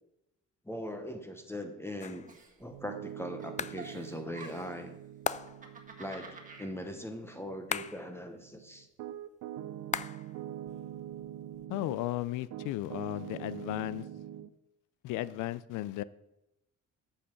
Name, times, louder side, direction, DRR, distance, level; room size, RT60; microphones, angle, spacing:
voice 1, 0.7-2.2 2.6-4.9 6.0-8.9, left 1 dB, 10° left, 1.0 m, -40 dB
sound 1, 2.0-2.4 3.6-3.9 5.2-5.8 7.7-8.2 9.9-10.4 10.7-11.6, left 7 dB, 25° left, 0.3 m, -37 dB
Giggle, 2.3-3.1 3.4-4.9 5.4-6.7, right 4 dB, 25° right, 1.6 m, -49 dB
Piano, 2.7-12.1 12.5-14.5, right 11 dB, 85° right, 0.6 m, -45 dB
voice 2, 11.7-14.1 15.0-16.0, left 15 dB, 90° left, 0.5 m, -35 dB
8.4 x 5.6 x 5.9 m
cardioid pair, 90°, 30 cm